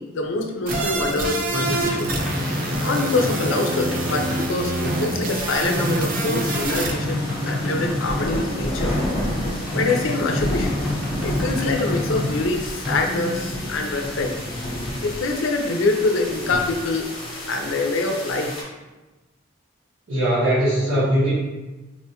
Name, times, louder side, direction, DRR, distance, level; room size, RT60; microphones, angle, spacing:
voice 1, 0.0-2.1 2.8-8.9 9.7-10.9 11.2-14.3 15.0-17.1 17.5-18.5, left 3 dB, 75° left, 3 dB, 0.4 m, -25 dB
sound 1, 0.7-14.2, left 1 dB, 5° right, 0.7 m, -28 dB
sound 2, 0.7-6.9, right 2 dB, 45° right, 0.4 m, -27 dB
sound 3, 1.8-18.6, left 1 dB, 25° left, 0.7 m, -32 dB
voice 2, 20.1-21.3, right 1 dB, 80° right, -11 dB, 1.0 m, -20 dB
4.2 x 2.2 x 2.8 m, 1.1 s
head